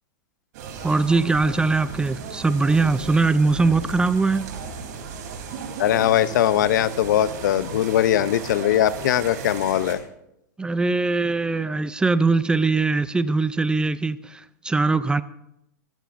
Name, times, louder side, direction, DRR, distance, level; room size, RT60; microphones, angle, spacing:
sound 1, 0.5-10.0, right 5 dB, 60° right, 3.4 m, -36 dB
voice 1, 0.8-4.5 10.6-15.2, right 3 dB, 10° right, 16 dB, 0.4 m, -21 dB
voice 2, 5.8-10.0, left 11 dB, 70° left, 16 dB, 0.7 m, -20 dB
26.5 x 13.5 x 2.6 m, 0.82 s
hypercardioid pair, 125°, 10 cm